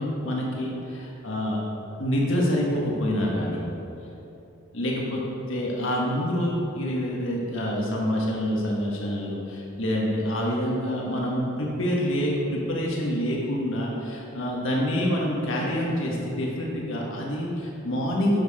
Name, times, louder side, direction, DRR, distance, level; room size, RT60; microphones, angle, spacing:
voice 1, 0.0-1.6 2.0-3.6 4.7-5.2 5.5-18.4, equal, 65° left, -3 dB, 1.5 m, -27 dB
11.0 x 5.9 x 5.0 m, 2.9 s
head